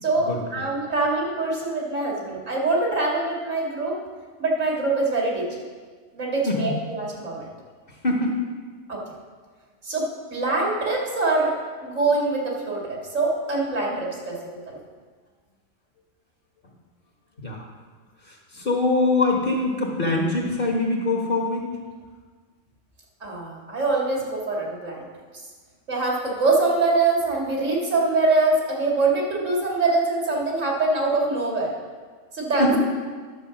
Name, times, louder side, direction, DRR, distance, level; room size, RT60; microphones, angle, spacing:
voice 1, 0.0-4.0 4.4-5.6 6.1-7.5 8.9-9.0 9.8-11.5 11.8-14.4 14.7-14.8 23.2-25.1 25.9-31.7 32.3-32.8, right 3 dB, 85° right, -2 dB, 2.5 m, -24 dB
voice 2, 8.0-8.4 16.6-16.7 17.4-17.6 18.2-21.7 32.6-32.8, left 2 dB, 45° left, -1 dB, 1.4 m, -23 dB
11.0 x 6.8 x 5.8 m, 1.5 s
omnidirectional pair, 1.3 m